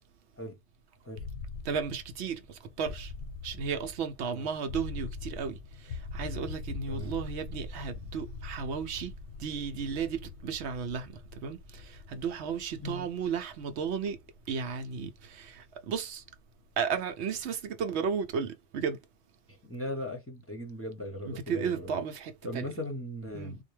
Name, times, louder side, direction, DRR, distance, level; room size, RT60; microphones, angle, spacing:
sound 1, 1.2-17.0, left 4 dB, 85° left, 1.0 m, -43 dB
voice 1, 1.6-3.1 3.4-9.1 9.4-14.2 14.5-16.2 16.8-19.0 21.2-22.7 23.3-23.5, right 6 dB, 75° right, 0.9 m, -34 dB
voice 2, 19.5-21.9 22.4-23.6, left 1 dB, 15° left, 0.9 m, -38 dB
3.9 x 2.2 x 3.2 m
omnidirectional pair, 1.2 m